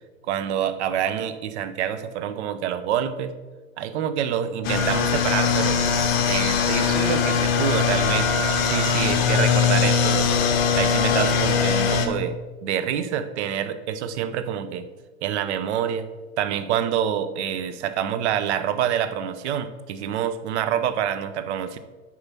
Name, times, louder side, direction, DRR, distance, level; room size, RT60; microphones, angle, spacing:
voice 1, 0.2-3.3 3.8-5.8 6.3-10.3 10.8-12.3 12.6-14.9 15.2-16.1 16.4-21.8, right 9 dB, 55° right, 10 dB, 0.9 m, -27 dB
sound 1, 4.6-12.1, left 6 dB, 45° left, 1.3 m, -21 dB
8.4 x 4.8 x 5.9 m, 1.3 s
hypercardioid pair, 125°, 40 cm